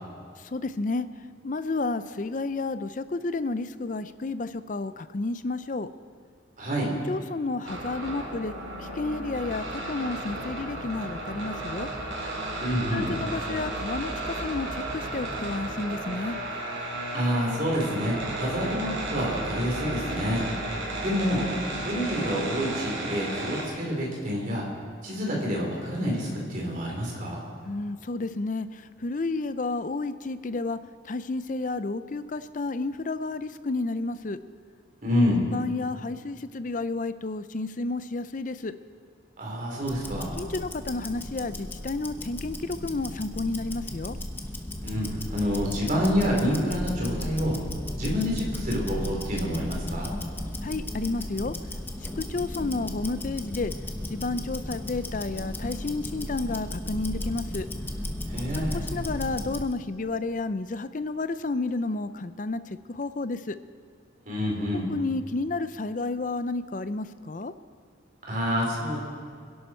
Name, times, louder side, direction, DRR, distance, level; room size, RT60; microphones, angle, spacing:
voice 1, 0.4-1.1 1.4-5.9 7.1-8.5 8.8-11.9 12.9-16.4 27.6-30.8 31.1-34.4 35.5-38.7 40.4-44.2 50.6-51.5 52.2-53.7 54.1-57.7 58.5-58.7 58.9-63.6 64.9-67.5, left 3 dB, 40° left, 12 dB, 0.5 m, -31 dB
voice 2, 6.6-6.9 12.6-13.1 17.1-20.4 21.0-21.5 21.8-24.6 25.0-27.4 35.0-35.4 39.4-40.3 44.8-45.1 45.3-47.6 48.0-50.1 58.3-58.8 64.3-64.9 68.3-69.0, equal, 45° right, -2 dB, 3.8 m, -27 dB
sound 1, 7.6-23.6, right 2 dB, 90° right, 4.2 m, -34 dB
Tick-tock, 39.8-59.7, left 1 dB, 10° left, 0.8 m, -35 dB
25.0 x 11.0 x 4.4 m, 2.1 s
head